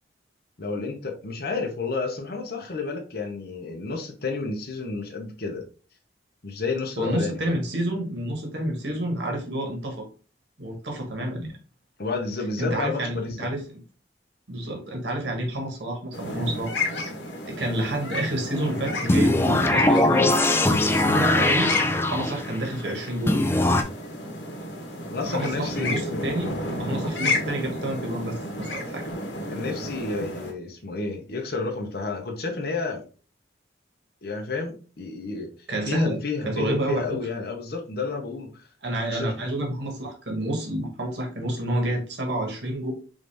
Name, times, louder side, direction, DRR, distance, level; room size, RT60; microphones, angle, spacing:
voice 1, 0.6-5.6 6.4-7.6 12.0-13.5 25.1-26.4 29.5-33.0 34.2-35.5 35.8-38.7 39.1-39.3, left 3 dB, 55° left, 1 dB, 0.8 m, -31 dB
voice 2, 7.0-10.0 10.6-11.5 12.6-13.8 14.5-16.7 17.5-21.7 22.0-23.6 25.2-29.1 35.7-37.0 38.8-42.9, right 1 dB, 70° right, 1 dB, 1.3 m, -29 dB
sound 1, 16.1-30.5, left 2 dB, 80° left, 1.2 m, -32 dB
sound 2, 19.1-22.6 23.3-23.8, left 2 dB, 15° left, 0.3 m, -21 dB
5.0 x 2.6 x 3.3 m, 0.37 s
head